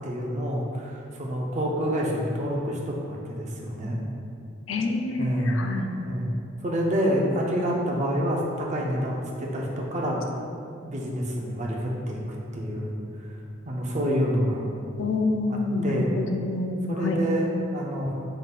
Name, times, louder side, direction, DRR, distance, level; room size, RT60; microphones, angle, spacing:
voice 1, 0.0-4.0 5.2-5.6 6.0-6.3 6.6-10.3 10.8-12.9 13.2-13.3 13.6-14.7 15.5-16.2 16.7-18.3, equal, 40° right, -2 dB, 0.6 m, -28 dB
voice 2, 4.7-5.9 15.0-17.2, left 2 dB, 85° left, 4 dB, 0.4 m, -27 dB
5.1 x 3.8 x 2.4 m, 2.5 s
head